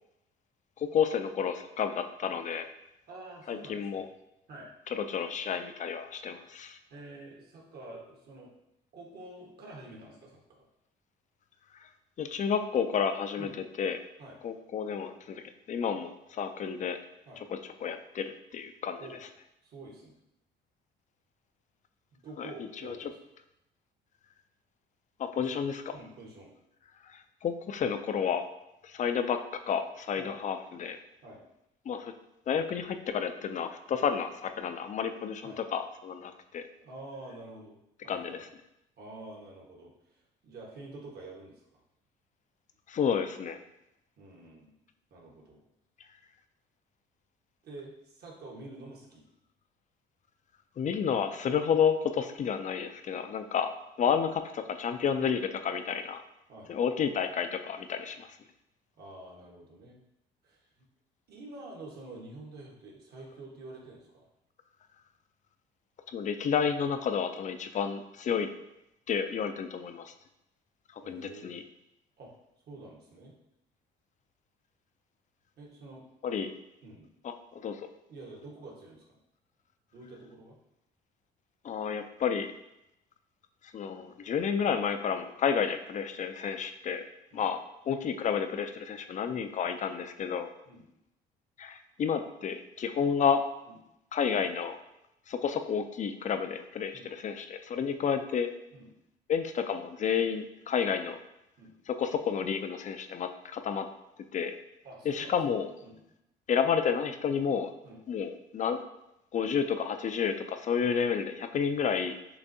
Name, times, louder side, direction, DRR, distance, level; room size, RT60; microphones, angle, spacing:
voice 1, 0.8-2.7 3.5-4.1 4.9-6.8 12.2-13.5 13.8-14.0 14.4-15.4 15.7-17.0 17.5-19.1 22.4-22.5 22.8-23.0 25.2-25.9 27.1-28.4 28.8-29.4 29.7-31.0 31.9-32.1 32.5-36.6 38.1-38.5 42.9-43.6 50.8-53.7 54.0-56.2 56.7-58.3 66.1-68.5 69.1-70.1 71.1-71.6 76.2-76.5 77.2-77.8 81.6-82.5 83.7-87.0 87.3-87.6 87.9-90.5 91.6-93.4 94.1-94.8 95.3-98.5 99.3-101.2 101.9-103.9 104.3-104.5 105.1-105.7 106.5-107.7 108.1-108.8 109.3-112.2, left 7 dB, 40° left, 8 dB, 0.4 m, -30 dB
voice 2, 3.1-4.1 4.5-4.7 6.9-8.5 8.9-10.7 13.4-13.6 14.2-14.4 17.3-17.4 19.0-19.2 19.6-20.2 22.2-23.2 25.3-25.5 25.9-26.5 30.2-30.3 31.2-31.4 35.4-35.6 36.8-37.8 38.0-38.4 39.0-41.8 44.2-44.7 45.1-45.6 47.6-49.2 54.0-54.2 56.5-56.7 59.0-60.0 60.4-60.8 61.3-64.3 71.0-71.6 72.2-72.3 72.7-73.3 75.6-76.0 76.8-77.1 78.1-79.2 79.9-80.5 87.3-87.4 90.6-90.9 93.6-93.8 96.9-97.1 98.7-98.9 101.6-101.7 104.8-105.4 105.8-106.0 107.8-108.0, right 2 dB, 55° right, -1 dB, 1.3 m, -48 dB
6.9 x 2.5 x 2.7 m, 0.86 s
supercardioid pair, 80°, 19 cm